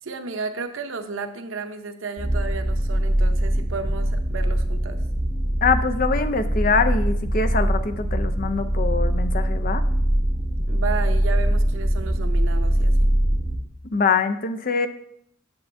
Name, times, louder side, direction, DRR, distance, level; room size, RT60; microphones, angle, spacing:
voice 1, 0.0-5.0 10.7-13.1, right 4 dB, 80° right, 7 dB, 0.8 m, -33 dB
sound 1, 2.2-13.5, right 1 dB, 5° left, 2.2 m, -22 dB
voice 2, 5.6-9.8 13.9-14.9, left 5 dB, 45° left, 8 dB, 0.6 m, -23 dB
10.5 x 6.8 x 2.7 m, 0.70 s
head